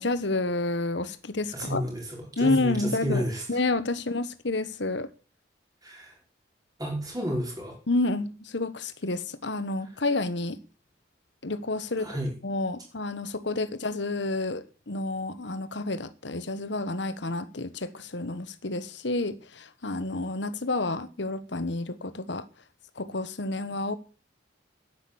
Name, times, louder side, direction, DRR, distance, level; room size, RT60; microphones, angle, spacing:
voice 1, 0.0-1.8 2.4-5.1 7.9-10.6 11.4-12.1 12.4-22.5 23.0-24.0, left 2 dB, 65° left, 1.2 m, -29 dB
voice 2, 1.5-2.0 2.3-3.4 5.8-6.1 6.8-7.8 12.0-12.3, equal, 20° right, 5.3 m, -31 dB
10.5 x 9.5 x 7.0 m
head